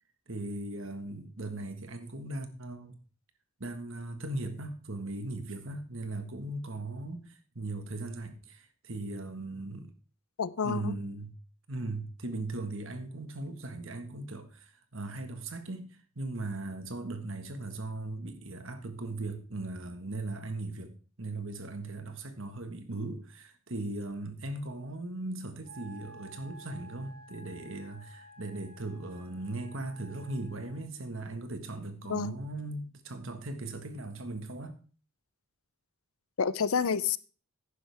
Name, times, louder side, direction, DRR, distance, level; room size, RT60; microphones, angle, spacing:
voice 1, 0.3-3.0 3.6-9.9 10.6-11.3 11.7-15.9 16.1-20.9 21.2-34.8, right 2 dB, 60° right, 1.5 m, -38 dB
voice 2, 10.4-11.0 32.1-32.4 36.4-37.2, left 6 dB, 70° left, 0.6 m, -29 dB
Wind instrument woodwind instrument, 25.6-30.9, right 1 dB, 45° right, 1.9 m, -53 dB
11.0 x 10.0 x 3.4 m
head